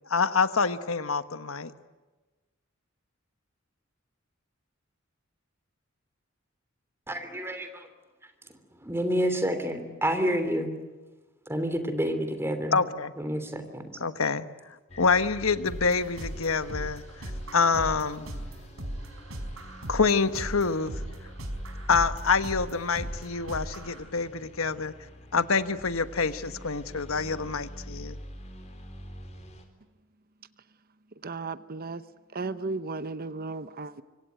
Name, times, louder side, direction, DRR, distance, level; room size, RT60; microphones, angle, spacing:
voice 1, 0.1-1.7 12.7-13.1 14.0-14.5 14.9-17.0 17.5-18.3 19.9-20.9 21.9-24.9 25.3-28.2, left 4 dB, 85° left, 11 dB, 1.3 m, -26 dB
voice 2, 7.1-7.9 8.8-10.7 11.5-12.8 13.2-14.0, equal, 10° right, 8 dB, 3.1 m, -29 dB
sound 1, 14.9-29.7, equal, 35° left, 4.4 m, -45 dB
sound 2, 15.7-24.0, right 1 dB, 80° right, 4.9 m, -38 dB
voice 3, 31.2-32.0 32.3-34.0, right 3 dB, 45° right, 13 dB, 0.8 m, -35 dB
26.0 x 24.5 x 9.3 m, 1.2 s
head